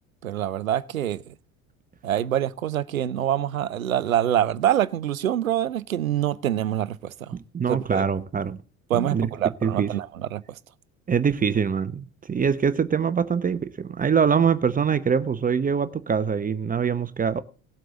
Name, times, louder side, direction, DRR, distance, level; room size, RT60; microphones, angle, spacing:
voice 1, 0.2-1.3 2.0-7.4 7.7-8.1 8.9-10.6, right 11 dB, 80° right, 0.6 m, -25 dB
voice 2, 7.3-8.6 8.9-9.3 9.6-9.9 11.1-17.4, right 6 dB, 20° right, 0.9 m, -24 dB
18.0 x 7.7 x 3.8 m
figure-of-eight pair, 60°, 41 cm